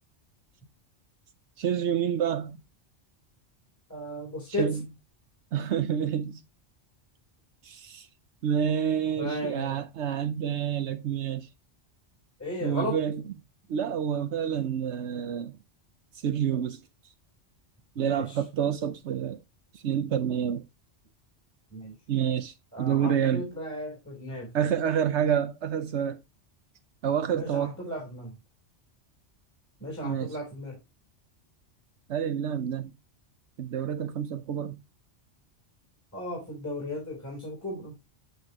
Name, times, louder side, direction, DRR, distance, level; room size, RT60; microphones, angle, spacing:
voice 1, 1.6-2.6 4.6-4.9 5.5-6.4 7.6-8.1 8.4-11.5 12.6-13.2 13.7-15.6 16.2-16.8 18.0-19.4 19.7-20.7 22.1-23.5 24.5-26.2 27.0-27.8 30.0-30.4 32.1-32.9 33.6-34.8, right 8 dB, 75° right, 1.0 m, -28 dB
voice 2, 3.9-4.8 9.2-9.8 10.9-11.0 12.4-13.0 17.9-18.3 21.7-21.9 22.7-24.5 27.3-28.3 29.8-30.8 36.1-37.9, left 1 dB, 15° left, 3.4 m, -35 dB
8.6 x 8.2 x 2.8 m
omnidirectional pair, 1.2 m